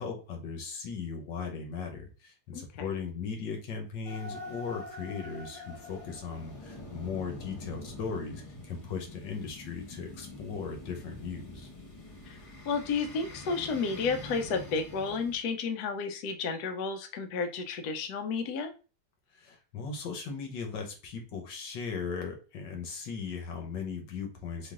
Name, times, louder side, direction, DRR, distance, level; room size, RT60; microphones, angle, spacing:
voice 1, 0.0-11.7 19.4-24.7, left 5 dB, 90° left, 4 dB, 1.7 m, -38 dB
voice 2, 2.5-2.9 12.3-12.4 12.7-18.7, left 4 dB, 70° left, 6 dB, 1.1 m, -32 dB
sound 1, 4.1-15.4, left 2 dB, 45° left, 0.4 m, -45 dB
3.9 x 3.1 x 3.7 m, 0.34 s
omnidirectional pair, 1.9 m